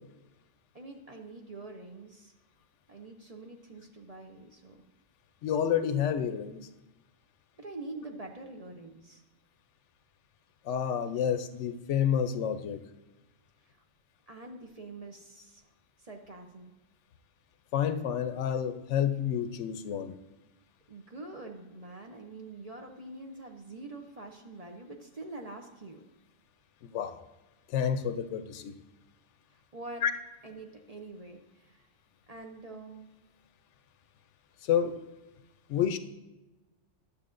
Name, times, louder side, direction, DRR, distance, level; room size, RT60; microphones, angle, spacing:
voice 1, 0.7-2.3 2.9-4.8 7.6-9.2 13.6-13.8 14.3-15.7 16.0-16.7 20.9-26.0 29.5-30.0 30.4-31.9 32.3-33.1, right 2 dB, 40° right, 3 dB, 0.7 m, -45 dB
voice 2, 5.4-6.6 10.7-12.8 17.7-20.1 26.8-27.2 27.7-28.7 30.0-30.1 34.6-35.0 35.7-36.0, left 8 dB, 80° left, 10 dB, 0.9 m, -29 dB
11.5 x 7.0 x 2.5 m, 1.1 s
omnidirectional pair, 1.2 m